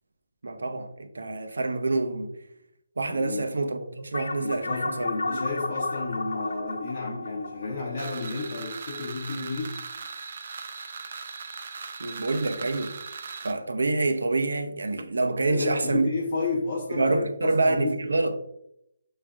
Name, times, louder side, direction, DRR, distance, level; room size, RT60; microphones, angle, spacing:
voice 1, 0.4-2.4 3.0-5.4 12.0-13.0 13.4-16.1 16.9-18.4, right 2 dB, 85° right, 0.6 m, -27 dB
voice 2, 3.1-3.5 4.4-9.8 15.5-18.1, left 3 dB, 30° left, 0.7 m, -32 dB
sound 1, 4.1-9.0, left 3 dB, 80° left, 0.4 m, -33 dB
sound 2, 8.0-13.5, right 5 dB, 35° right, 0.4 m, -39 dB
6.1 x 3.2 x 2.4 m
hypercardioid pair, 175°, 0 cm